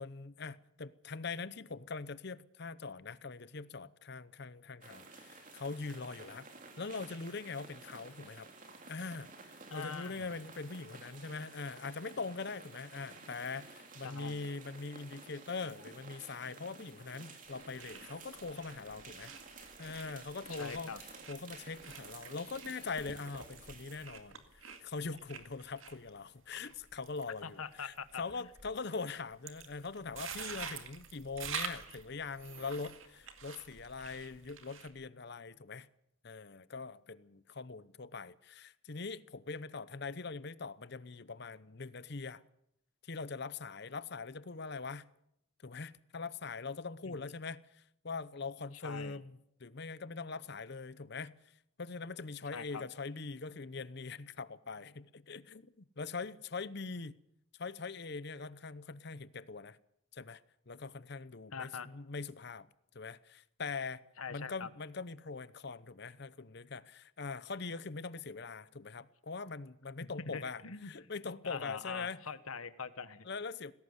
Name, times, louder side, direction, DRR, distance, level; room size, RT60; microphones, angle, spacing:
voice 1, 0.0-6.5 6.8-8.5 8.9-19.3 19.8-20.9 21.3-35.9 36.2-42.4 43.0-45.1 45.6-51.4 51.8-57.2 57.6-59.8 60.1-60.4 60.7-62.7 62.9-64.0 64.3-70.6 70.9-72.2 73.3-73.7, left 4 dB, 50° left, 0.7 m, -42 dB
sound 1, 4.8-24.1, right 3 dB, 40° right, 3.3 m, -53 dB
voice 2, 9.7-10.3 14.0-14.5 20.5-21.0 27.4-28.5 47.1-47.3 48.8-49.2 52.4-52.8 61.5-61.9 64.2-64.7 70.0-71.1 71.4-73.3, left 5 dB, 85° left, 1.3 m, -44 dB
sound 2, 17.5-34.9, right 6 dB, 70° right, 2.1 m, -48 dB
19.0 x 17.0 x 8.1 m
head